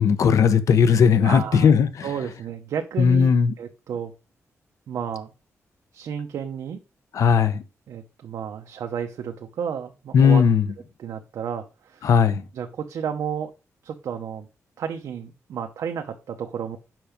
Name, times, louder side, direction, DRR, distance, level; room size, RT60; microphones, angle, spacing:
voice 1, 0.0-2.1 3.0-3.5 7.1-7.6 10.1-10.6 12.0-12.4, left 6 dB, 75° left, 1.1 m, -17 dB
voice 2, 1.2-1.7 2.0-3.3 3.6-4.1 4.9-5.3 5.9-6.8 7.9-10.4 11.0-12.1 12.5-13.5 13.8-14.5 14.8-16.8, right 7 dB, 85° right, 1.0 m, -32 dB
7.6 x 5.9 x 5.1 m
wide cardioid pair, 145°, 6 cm